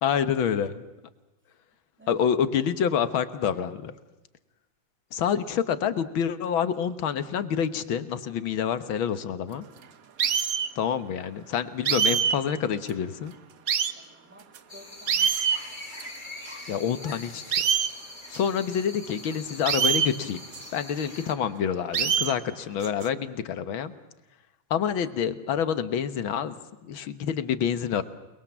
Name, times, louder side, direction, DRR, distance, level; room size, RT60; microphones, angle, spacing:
voice 1, 0.0-0.8 2.1-3.9 5.1-9.7 10.8-13.3 16.7-17.4 18.3-20.4 20.7-23.9 24.7-26.5 26.9-28.0, left 8 dB, 80° left, 12 dB, 2.0 m, -27 dB
sound 1, 10.2-10.7 11.8-12.3 12.9-13.0 13.7-13.9 14.5-14.6 15.1-15.6 16.0-16.1 16.5-16.6 17.5-17.9 18.3-18.4 19.6-20.1 20.5-20.6 21.9-22.3 22.8-23.1, right 7 dB, 50° right, 1.3 m, -24 dB
voice 2, 14.0-15.6, right 1 dB, 5° right, 3 dB, 3.4 m, -52 dB
sound 2, 14.7-21.3, left 2 dB, 25° left, 2.7 m, -43 dB
29.0 x 21.5 x 7.3 m, 1.0 s
omnidirectional pair, 2.2 m